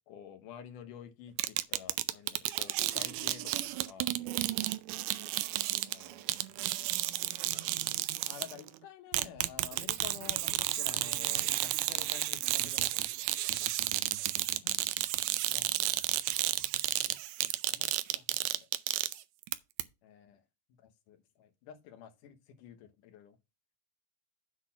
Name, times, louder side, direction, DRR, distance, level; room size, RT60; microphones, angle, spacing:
voice 1, 0.1-4.2 5.9-7.1 7.5-13.7 14.6-14.8 15.5-15.9 17.7-18.7 20.0-20.4 20.8-23.4, left 9 dB, 75° left, 2.6 m, -51 dB
sound 1, 1.4-8.7 9.1-19.5 19.8-19.9, right 16 dB, 85° right, 2.1 m, -32 dB
8.0 x 4.2 x 5.7 m
omnidirectional pair, 3.8 m